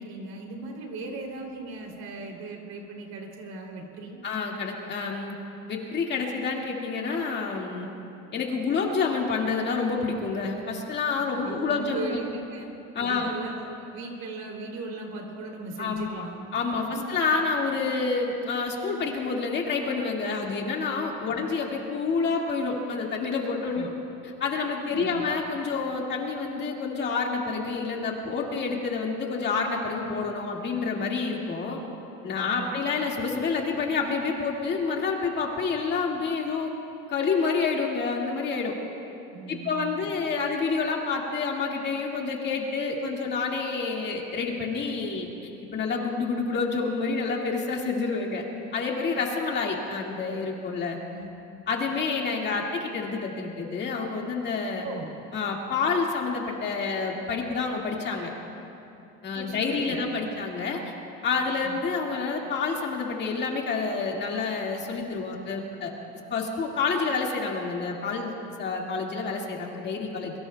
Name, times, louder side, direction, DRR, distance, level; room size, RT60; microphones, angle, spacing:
voice 1, 0.0-4.2 11.4-12.7 12.9-16.4 16.9-17.0 21.3-21.5 23.7-23.9 24.8-25.2 32.5-32.8 39.3-40.1 51.1-51.3 54.8-55.1 59.3-60.3 61.5-61.8, right 3 dB, 60° right, 1 dB, 3.0 m, -38 dB
voice 2, 4.2-5.4 5.7-7.9 8.3-12.2 12.9-13.4 15.8-16.2 16.5-23.9 24.4-31.8 32.2-36.7 37.1-38.7 39.5-48.4 48.7-51.0 51.7-54.9 55.3-58.3 59.2-60.9 61.2-65.9 66.3-70.3, left 4 dB, 35° left, -1 dB, 2.0 m, -28 dB
26.0 x 23.0 x 2.3 m, 2.7 s
cardioid pair, 155°, 30 cm